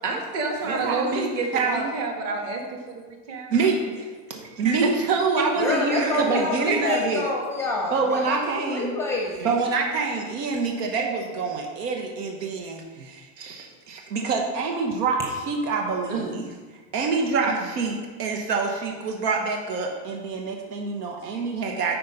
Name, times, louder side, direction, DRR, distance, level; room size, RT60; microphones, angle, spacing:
voice 1, 0.0-3.5 4.8-4.9 5.4-5.9 16.1-16.4, right 3 dB, 35° right, 2 dB, 1.4 m, -29 dB
voice 2, 0.7-1.2 1.5-1.9 3.5-7.3 7.9-9.0 9.4-15.2 15.5-16.4 16.9-22.0, right 4 dB, 90° right, 1 dB, 1.4 m, -26 dB
voice 3, 5.6-9.5 21.3-21.4, left 3 dB, 5° left, -1 dB, 0.6 m, -27 dB
10.0 x 4.3 x 5.3 m, 1.4 s
supercardioid pair, 175°, 46 cm